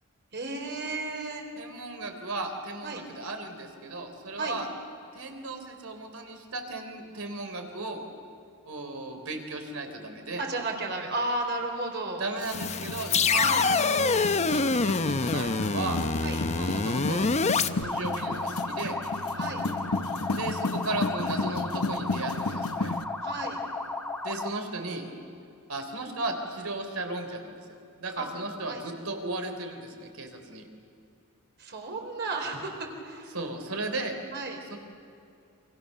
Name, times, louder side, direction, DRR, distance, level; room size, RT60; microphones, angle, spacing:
voice 1, 0.3-1.4 2.8-3.0 4.4-4.6 10.4-12.2 13.3-13.7 16.2-16.4 19.3-19.6 23.2-23.6 28.2-28.3 28.7-28.8 31.6-33.3 34.3-34.6, right 2 dB, 50° right, 2 dB, 4.3 m, -33 dB
voice 2, 1.6-4.7 5.1-8.0 8.7-10.4 12.2-14.0 14.5-16.0 16.6-17.3 17.8-19.0 20.3-23.0 24.2-25.0 25.7-27.6 28.0-30.7 33.3-34.2 34.7-34.8, right 2 dB, 70° right, 5 dB, 3.8 m, -35 dB
sound 1, 12.4-17.7, left 4 dB, 30° left, 0.8 m, -26 dB
sound 2, 12.5-23.0, left 3 dB, 70° left, 1.0 m, -33 dB
sound 3, 17.8-24.6, left 2 dB, 10° left, 2.0 m, -34 dB
28.5 x 25.5 x 6.8 m, 2.6 s
head